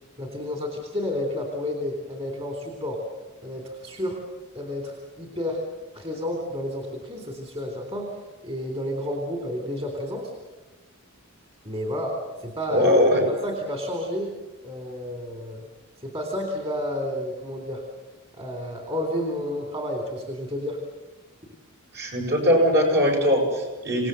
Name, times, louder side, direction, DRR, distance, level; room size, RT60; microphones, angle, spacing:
voice 1, 0.2-3.0 3.4-4.2 4.5-5.6 5.9-10.3 11.6-12.9 13.3-14.3 14.6-15.7 16.0-17.8 18.3-20.8, left 1 dB, 30° right, 3 dB, 3.5 m, -31 dB
voice 2, 12.7-13.2 21.9-24.1, equal, 50° right, 1 dB, 7.4 m, -20 dB
27.5 x 18.5 x 7.8 m, 1.1 s
head